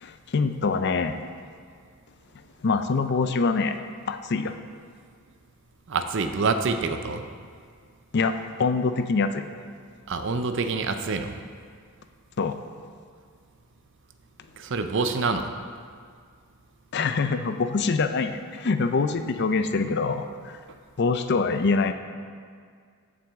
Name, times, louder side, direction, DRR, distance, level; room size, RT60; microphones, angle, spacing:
voice 1, 0.0-1.2 2.6-3.8 4.1-4.5 8.1-8.3 8.6-9.4 12.4-12.6 16.9-20.6 21.0-21.9, left 4 dB, 50° left, 9 dB, 0.4 m, -24 dB
voice 2, 5.9-7.2 10.1-11.4 14.6-15.5, right 4 dB, 55° right, 8 dB, 0.6 m, -26 dB
14.5 x 6.0 x 3.5 m, 2.1 s
head